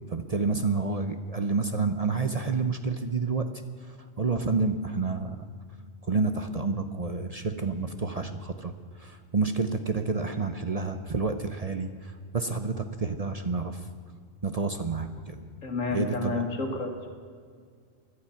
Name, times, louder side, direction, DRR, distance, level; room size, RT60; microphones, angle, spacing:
voice 1, 0.1-3.5 4.2-5.4 6.1-8.7 9.0-11.9 12.3-13.8 14.4-15.4 15.9-16.4, right 4 dB, 35° right, 8 dB, 0.7 m, -29 dB
voice 2, 15.6-17.1, left 3 dB, 85° left, 3 dB, 2.4 m, -30 dB
17.0 x 12.0 x 5.8 m, 2.1 s
omnidirectional pair, 1.3 m